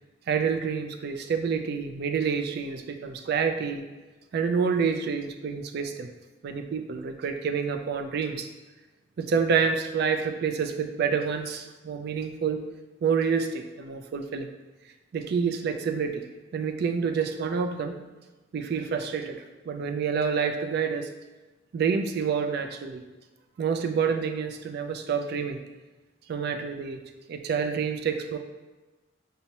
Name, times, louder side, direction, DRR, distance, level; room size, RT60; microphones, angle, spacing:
voice 1, 0.3-3.8 4.3-6.1 6.4-8.5 9.2-12.6 13.0-14.5 15.1-16.2 16.5-18.0 18.5-21.1 21.7-23.0 23.6-25.6 26.3-27.0 27.3-28.4, right 6 dB, 60° right, 6 dB, 0.3 m, -28 dB
5.3 x 2.1 x 2.8 m, 1.2 s
head